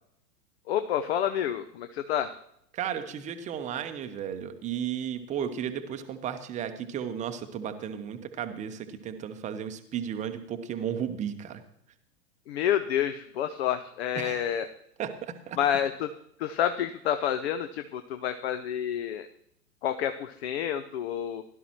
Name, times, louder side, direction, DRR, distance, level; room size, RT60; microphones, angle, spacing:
voice 1, 0.7-2.3 12.5-14.7 15.6-16.1 16.4-19.3 19.8-21.4, left 10 dB, 45° left, 10 dB, 0.7 m, -29 dB
voice 2, 2.7-11.6 14.1-14.6 15.0-15.6, right 8 dB, 15° right, 8 dB, 0.8 m, -34 dB
17.0 x 12.0 x 3.0 m, 0.72 s
figure-of-eight pair, 100°, 46 cm